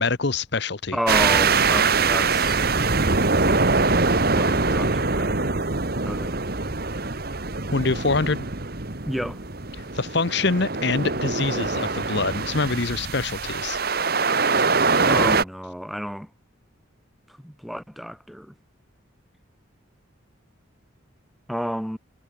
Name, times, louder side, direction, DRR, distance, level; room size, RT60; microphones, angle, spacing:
voice 1, 0.0-1.0 7.7-8.5 9.9-13.8, left 3 dB, 55° left, 1.0 m, -25 dB
voice 2, 0.9-3.6 4.3-5.6 6.0-6.4 9.1-9.4 15.0-16.3 17.4-18.5 21.5-22.0, equal, ahead, 2.6 m, -31 dB
sound 1, 1.1-15.4, right 4 dB, 45° right, 1.7 m, -23 dB
head